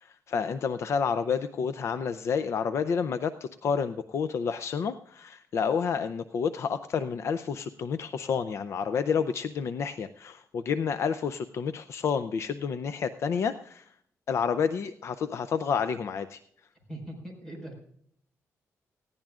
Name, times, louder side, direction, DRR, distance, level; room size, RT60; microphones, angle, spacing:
voice 1, 0.0-13.9 14.3-16.4, left 6 dB, 55° left, 11 dB, 0.5 m, -29 dB
voice 2, 16.9-17.8, right 1 dB, 10° left, 1 dB, 5.0 m, -40 dB
19.5 x 15.5 x 2.4 m, 0.67 s
wide cardioid pair, 160°, 6 cm